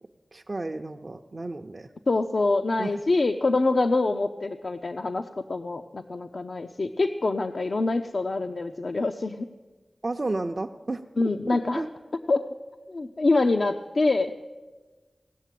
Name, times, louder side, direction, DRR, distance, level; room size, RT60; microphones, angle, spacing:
voice 1, 0.3-1.9 2.8-3.0 10.0-11.0 11.5-11.9, right 2 dB, 45° right, 2 dB, 0.6 m, -32 dB
voice 2, 2.1-9.5 11.2-11.8 12.3-12.5 12.9-14.3, left 3 dB, 65° left, 6 dB, 0.5 m, -25 dB
17.0 x 6.7 x 9.1 m, 1.3 s
wide cardioid pair, 55°, 0 cm